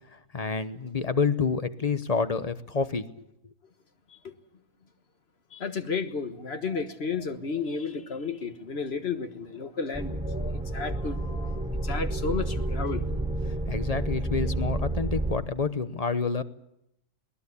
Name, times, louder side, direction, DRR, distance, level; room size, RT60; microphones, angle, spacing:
voice 1, 0.1-3.1 13.7-16.4, left 5 dB, 30° left, 0.9 m, -28 dB
voice 2, 5.5-13.1, left 5 dB, 50° left, 1.6 m, -33 dB
sound 1, 9.9-15.4, right 2 dB, 5° right, 1.2 m, -30 dB
21.5 x 19.5 x 8.4 m
omnidirectional pair, 1.4 m